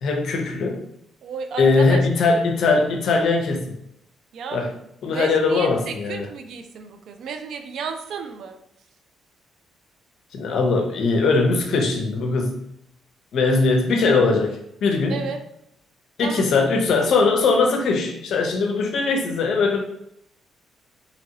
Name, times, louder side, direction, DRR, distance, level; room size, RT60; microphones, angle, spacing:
voice 1, 0.0-0.8 1.6-3.7 4.5-4.7 5.0-6.3 10.3-12.6 13.3-15.2 16.2-19.8, left 3 dB, 70° left, 3 dB, 0.6 m, -20 dB
voice 2, 1.2-2.0 4.3-4.8 5.1-8.6 15.1-15.4 16.2-16.5, right 6 dB, 70° right, 6 dB, 0.4 m, -33 dB
2.8 x 2.6 x 2.8 m, 0.76 s
cardioid pair, 90°, 0 cm